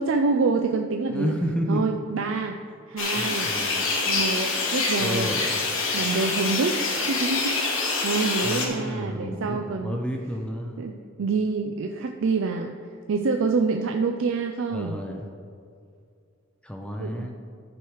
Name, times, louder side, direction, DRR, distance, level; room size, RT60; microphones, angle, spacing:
voice 1, 0.0-1.3 1.7-2.6 2.9-3.5 4.1-5.3 5.9-10.0 10.8-12.7 13.1-15.0 17.0-17.3, right 4 dB, 65° right, 4 dB, 0.4 m, -26 dB
voice 2, 1.1-1.8 3.1-3.9 5.0-5.5 8.4-10.9 14.7-15.3 16.6-17.3, equal, 5° left, 2 dB, 0.6 m, -31 dB
sound 1, 3.0-8.7, left 3 dB, 70° left, 1.4 m, -26 dB
12.5 x 4.7 x 4.8 m, 2.3 s
head